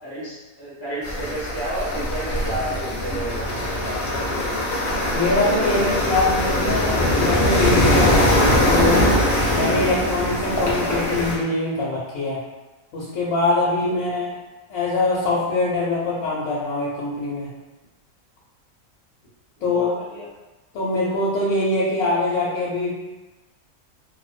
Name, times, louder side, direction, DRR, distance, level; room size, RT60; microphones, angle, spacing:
voice 1, 0.0-4.1 19.6-20.3, right 1 dB, 15° right, -11 dB, 0.5 m, -32 dB
sound 1, 1.0-11.4, left 1 dB, 60° left, 0.7 m, -21 dB
voice 2, 5.1-8.3 8.7-9.0 9.5-12.4 12.9-14.3 14.7-17.5 19.6-19.9 20.7-22.9, left 2 dB, 80° left, -7 dB, 1.0 m, -23 dB
2.5 x 2.0 x 2.4 m, 1.1 s
omnidirectional pair, 1.5 m